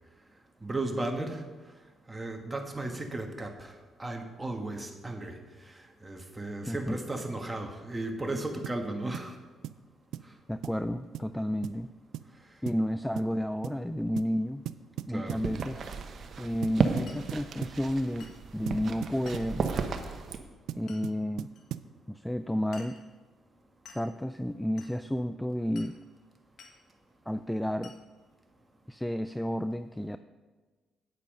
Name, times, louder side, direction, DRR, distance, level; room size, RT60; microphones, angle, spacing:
voice 1, 0.6-1.4 2.1-5.4 5.7-9.4 15.1-15.4, right 2 dB, 15° right, 4 dB, 1.4 m, -35 dB
voice 2, 6.7-7.0 10.5-11.9 12.6-14.6 15.1-15.8 16.4-19.7 20.8-21.5 22.1-23.0 23.9-26.0 27.3-27.9 28.9-30.2, equal, 5° left, 11 dB, 0.3 m, -31 dB
sound 1, 8.6-8.8 9.1-9.3 9.6-9.9 10.1-10.3 10.6-10.8 11.1-11.3 11.6-11.8 12.1-12.3 12.7-12.9 13.2-13.3 13.6-13.8 14.2-14.4 14.7-15.8 16.6-17.8 18.7-19.9 20.7-21.9, right 11 dB, 85° right, 0.3 m, -39 dB
sound 2, 15.3-20.4, right 5 dB, 55° right, 1.0 m, -34 dB
Glass, 17.1-17.3 18.2-18.4 19.3-19.5 20.9-21.1 21.5-21.6 22.7-23.1 23.8-24.1 24.8-25.0 25.7-26.0 26.6-26.8 27.8-28.0, left 4 dB, 70° left, 1.5 m, -51 dB
9.0 x 8.3 x 5.3 m, 1.3 s
cardioid pair, 90°, 0 cm